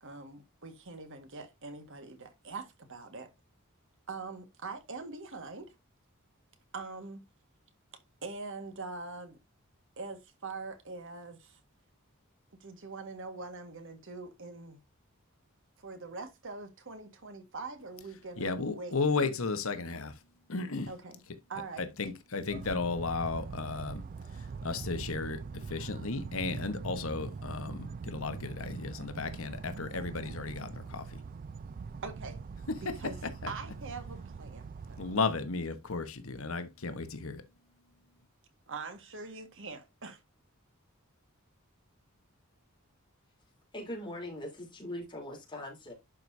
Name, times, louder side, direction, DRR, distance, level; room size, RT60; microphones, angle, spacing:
voice 1, 0.0-3.3 4.1-5.7 6.7-7.2 8.2-9.4 10.0-11.6 12.6-14.8 15.8-19.0 20.9-21.2 21.5-21.8 32.0-32.4 32.8-33.2 33.5-35.0 38.7-40.2, right 3 dB, 60° right, 1.7 m, -43 dB
voice 2, 18.4-20.2 20.5-20.9 21.8-24.0 24.3-31.2 32.8-33.0 33.4-33.5 35.0-37.4, left 4 dB, 70° left, 1.2 m, -34 dB
sound 1, 22.5-35.2, right 5 dB, 40° right, 0.3 m, -43 dB
voice 3, 43.7-45.9, left 1 dB, 20° left, 3.4 m, -41 dB
11.5 x 4.7 x 2.7 m
head